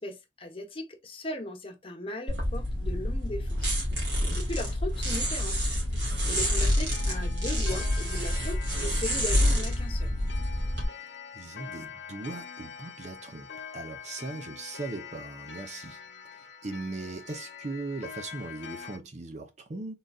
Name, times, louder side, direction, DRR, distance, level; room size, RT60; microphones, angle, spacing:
voice 1, 0.0-3.7 4.0-10.2, left 1 dB, 30° left, 1.1 m, -38 dB
sound 1, 2.3-10.8, equal, 65° right, 2.3 m, -28 dB
voice 2, 3.9-4.4 10.8-16.0 16.3-20.0, right 2 dB, 40° right, 0.7 m, -39 dB
Clock, 6.9-19.0, left 7 dB, 65° left, 0.9 m, -44 dB
3.9 x 3.9 x 2.4 m
head